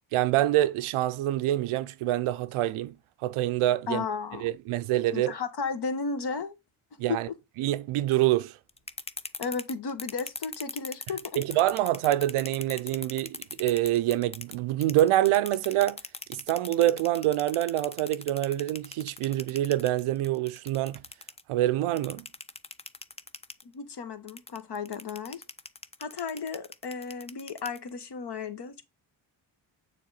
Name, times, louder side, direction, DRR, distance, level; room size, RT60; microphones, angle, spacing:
voice 1, 0.1-2.9 3.2-4.1 4.4-5.3 7.0-7.3 7.6-8.6 11.4-16.0 16.3-21.0 21.5-22.3, right 14 dB, 75° right, 0.6 m, -26 dB
voice 2, 3.9-4.5 5.1-6.5 7.1-7.2 9.4-11.2 23.6-25.4 26.0-28.8, left 5 dB, 50° left, 1.2 m, -34 dB
sound 1, 8.7-14.5 14.8-21.4 22.0-23.6 24.3-28.0, left 3 dB, 15° left, 0.4 m, -40 dB
6.6 x 3.6 x 3.9 m
supercardioid pair, 50°, 50 cm